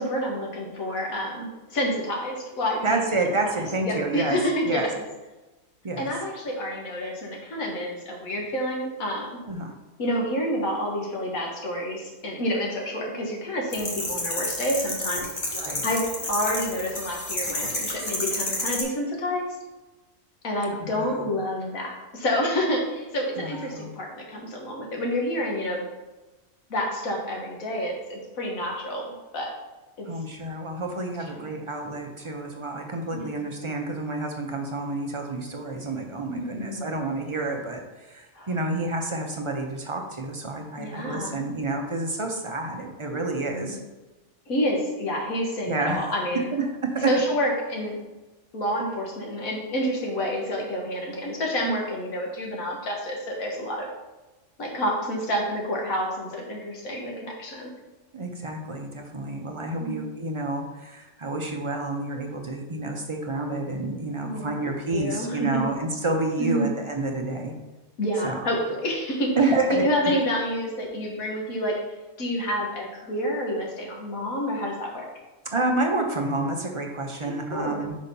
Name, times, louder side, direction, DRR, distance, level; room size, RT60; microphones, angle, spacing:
voice 1, 0.0-3.0 3.8-5.0 6.0-9.3 10.0-15.3 15.8-19.5 20.4-25.8 26.7-29.5 30.0-30.1 31.4-31.6 33.1-33.5 36.3-37.0 38.4-38.5 40.8-41.4 43.5-43.8 44.5-46.5 47.1-48.0 48.5-53.9 54.6-57.7 59.8-60.1 64.2-65.7 66.4-66.7 68.0-69.3 69.7-71.8 72.2-75.0 77.2-77.8, equal, 80° left, -1 dB, 1.8 m, -28 dB
voice 2, 2.8-4.4 4.6-4.9 5.8-6.1 9.5-9.7 15.5-15.9 20.7-21.3 23.4-23.9 30.1-43.8 45.7-46.0 46.5-47.1 58.1-67.5 68.2-68.5 69.4-70.2 75.4-77.9, right 2 dB, 40° right, 2 dB, 0.4 m, -29 dB
sound 1, 13.7-18.8, left 2 dB, 35° left, 1.3 m, -30 dB
5.1 x 4.2 x 5.3 m, 1.1 s
omnidirectional pair, 1.4 m